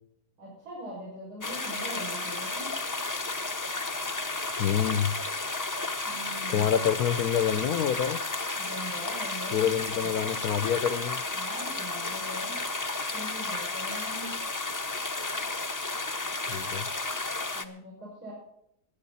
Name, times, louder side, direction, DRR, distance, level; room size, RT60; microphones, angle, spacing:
voice 1, 0.4-2.7 6.0-6.7 8.6-9.7 10.0-10.4 11.3-12.6 13.0-14.4 17.5-18.3, equal, 65° right, -7 dB, 6.5 m, -42 dB
sound 1, 1.4-17.6, left 2 dB, 15° left, 0.6 m, -33 dB
voice 2, 4.6-5.1 6.5-8.2 9.5-11.2 16.5-16.9, left 9 dB, 70° left, 13 dB, 1.1 m, -27 dB
22.0 x 9.3 x 4.1 m, 0.76 s
omnidirectional pair, 1.7 m